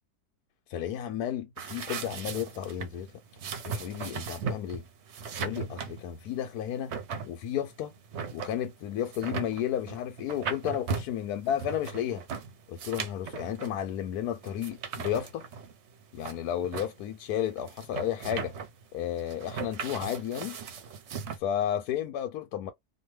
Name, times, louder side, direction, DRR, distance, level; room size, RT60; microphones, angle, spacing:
voice 1, 0.7-3.1 3.6-4.9 5.4-6.9 7.3-7.9 8.3-12.2 12.7-15.5 16.1-18.6 18.9-20.6 21.4-22.7, left 10 dB, 75° left, 1.1 m, -32 dB
sound 1, 1.6-21.4, right 5 dB, 60° right, 0.7 m, -38 dB
2.6 x 2.3 x 3.1 m
omnidirectional pair, 1.8 m